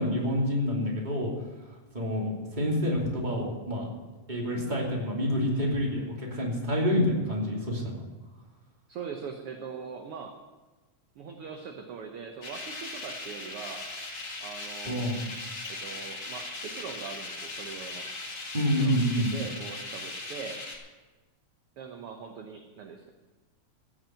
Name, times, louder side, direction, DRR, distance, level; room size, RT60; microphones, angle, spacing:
voice 1, 0.0-1.3 1.9-3.9 4.3-8.0 14.8-15.2 18.5-19.3, equal, 15° right, -2 dB, 2.7 m, -27 dB
voice 2, 8.9-10.4 11.2-13.9 14.4-15.2 15.7-18.1 18.8-19.0 19.3-20.6 21.8-23.1, right 6 dB, 60° right, 4 dB, 1.7 m, -41 dB
sound 1, 12.4-20.8, left 2 dB, 35° left, 2.4 m, -39 dB
16.0 x 7.6 x 7.7 m, 1.2 s
omnidirectional pair, 3.4 m